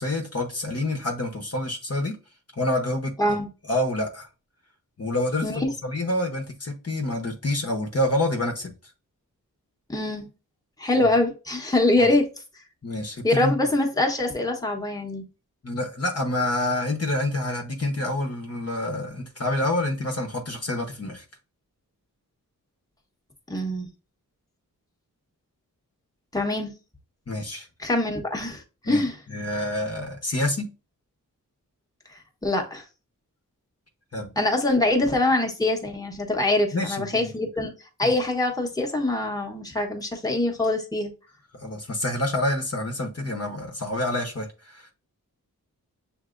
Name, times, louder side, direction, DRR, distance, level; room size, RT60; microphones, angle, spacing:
voice 1, 0.0-2.2 2.6-3.4 3.7-4.3 5.0-8.7 11.0-11.1 12.0-12.1 12.8-13.5 15.6-21.2 27.3-27.7 28.9-29.0 29.3-30.7 34.1-34.3 36.7-37.3 38.0-38.1 41.6-44.9, left 1 dB, 45° left, 1.0 m, -27 dB
voice 2, 9.9-10.3 10.8-12.3 13.2-15.2 23.5-23.9 26.3-26.7 27.8-29.2 32.1-32.8 34.4-37.7 38.0-41.1, left 2 dB, 10° left, 1.1 m, -24 dB
6.6 x 2.8 x 2.5 m
cardioid pair, 45°, 35 cm